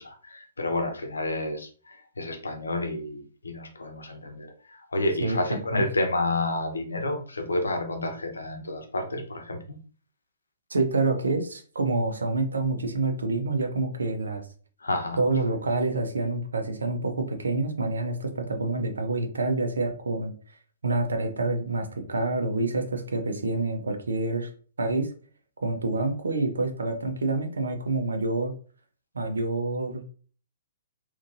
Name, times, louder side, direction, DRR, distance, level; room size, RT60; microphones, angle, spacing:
voice 1, 0.0-9.8 14.8-15.2, left 2 dB, 75° left, 4 dB, 0.7 m, -30 dB
voice 2, 5.2-5.8 10.7-14.4 15.2-20.3 20.8-24.5 24.8-25.1 25.6-28.5 29.1-30.0, right 3 dB, 70° right, 7 dB, 0.6 m, -27 dB
3.6 x 2.5 x 2.6 m, 0.41 s
figure-of-eight pair, 115°, 0 cm